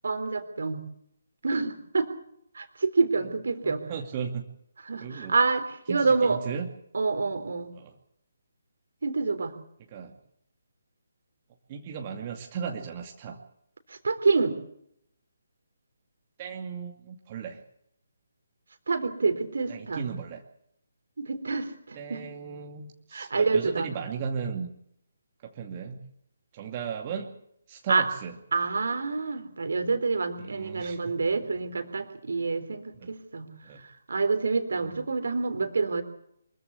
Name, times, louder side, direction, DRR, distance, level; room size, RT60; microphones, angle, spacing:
voice 1, 0.0-0.8 1.4-2.1 2.5-3.8 4.8-6.4 6.9-7.7 9.0-9.5 13.9-14.6 18.9-20.0 21.2-22.2 23.1-23.9 27.9-28.1 28.5-33.5 33.8-36.0, right 4 dB, 60° right, 9 dB, 3.5 m, -27 dB
voice 2, 3.6-4.4 5.0-5.3 5.9-6.7 7.7-7.9 9.9-10.2 11.7-13.4 16.4-17.6 19.7-20.4 22.0-24.7 25.4-26.0 26.5-27.4 27.7-28.3 30.4-31.1 33.0-33.1 33.6-33.8 34.7-34.9, right 6 dB, 30° right, 2 dB, 2.3 m, -36 dB
24.5 x 14.5 x 8.3 m, 0.71 s
figure-of-eight pair, 145°, 0 cm